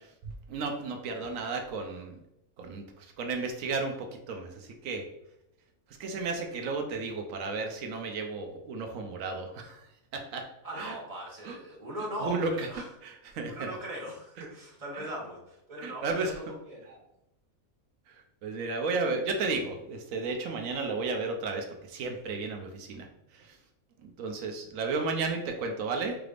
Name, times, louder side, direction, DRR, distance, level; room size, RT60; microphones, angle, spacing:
voice 1, 0.2-2.2 2.6-5.1 6.0-9.9 10.1-10.4 10.7-11.0 11.4-11.6 12.2-12.7 13.0-13.8 14.9-15.1 15.8-16.4 18.1-23.1 23.3-23.6 24.0-26.2, right 3 dB, 90° right, 3 dB, 1.0 m, -33 dB
voice 2, 10.6-12.8 13.5-17.0, equal, 30° right, -4 dB, 1.3 m, -39 dB
4.8 x 3.3 x 2.4 m, 0.84 s
omnidirectional pair, 1.4 m